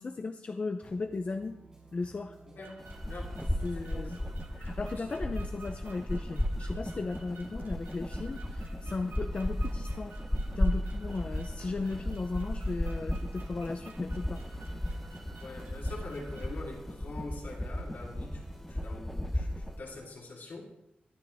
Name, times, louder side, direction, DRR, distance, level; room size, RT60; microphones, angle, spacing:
voice 1, 0.0-1.6 1.9-2.4 3.6-4.2 4.5-10.2 10.6-14.4, left 3 dB, 35° left, 7 dB, 0.6 m, -36 dB
sound 1, 0.8-20.0, right 1 dB, 20° right, 4.5 m, -55 dB
voice 2, 2.5-4.3 5.0-5.2 15.4-20.7, left 2 dB, 70° left, -2 dB, 3.6 m, -45 dB
sound 2, 2.6-16.6, right 4 dB, 85° right, 2.2 m, -54 dB
sound 3, 2.8-19.8, left 1 dB, 5° left, 0.9 m, -35 dB
19.5 x 12.5 x 3.5 m, 0.86 s
wide cardioid pair, 175°, 3 cm